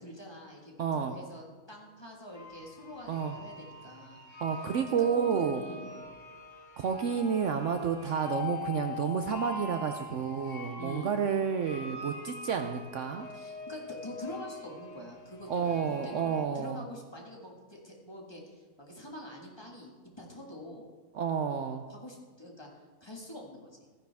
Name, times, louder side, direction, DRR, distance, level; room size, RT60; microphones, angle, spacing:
voice 1, 0.0-4.2 4.6-5.9 10.8-11.1 13.3-20.9 21.9-22.7 23.0-23.8, left 1 dB, 20° left, -1 dB, 1.7 m, -45 dB
voice 2, 0.8-1.2 3.1-3.4 4.4-5.6 6.8-13.3 15.5-16.8 21.1-21.8, right 7 dB, 65° right, 6 dB, 0.9 m, -30 dB
sound 1, 2.3-16.4, left 4 dB, 60° left, 1.6 m, -43 dB
14.5 x 9.7 x 3.5 m, 1.4 s
omnidirectional pair, 1.5 m